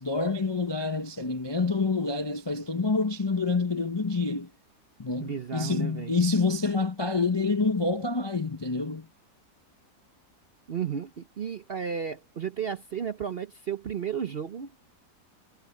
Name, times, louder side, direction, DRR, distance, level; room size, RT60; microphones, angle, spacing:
voice 1, 0.0-4.5 5.0-9.1, left 3 dB, 30° left, 0.4 m, -27 dB
voice 2, 5.2-6.1 10.7-14.7, right 7 dB, 50° right, 0.7 m, -33 dB
omnidirectional pair, 1.8 m